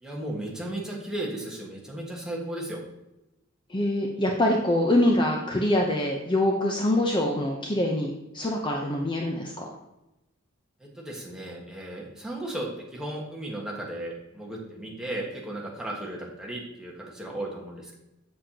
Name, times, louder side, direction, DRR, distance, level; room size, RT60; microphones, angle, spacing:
voice 1, 0.0-2.8 10.8-18.0, right 1 dB, 5° right, -3 dB, 1.5 m, -35 dB
voice 2, 3.7-9.7, left 1 dB, 25° left, 0 dB, 0.7 m, -24 dB
7.5 x 7.3 x 2.9 m, 0.92 s
head